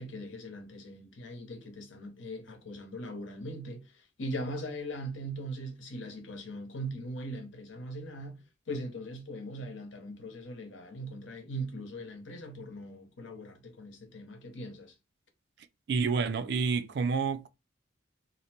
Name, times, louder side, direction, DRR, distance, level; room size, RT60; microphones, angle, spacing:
voice 1, 0.0-8.4 8.7-14.9, right 1 dB, 75° left, 0.8 m, -40 dB
voice 2, 15.9-17.5, right 5 dB, 55° right, 0.3 m, -29 dB
2.6 x 2.1 x 2.8 m
head